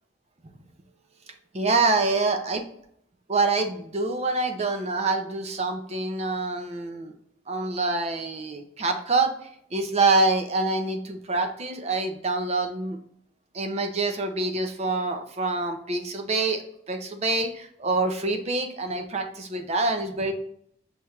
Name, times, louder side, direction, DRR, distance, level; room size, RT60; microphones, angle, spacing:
voice 1, 1.5-2.6 3.3-7.2 7.5-9.3 9.7-13.0 13.5-20.3, right 3 dB, 30° right, 6 dB, 0.5 m, -26 dB
5.6 x 3.3 x 2.4 m, 0.68 s
head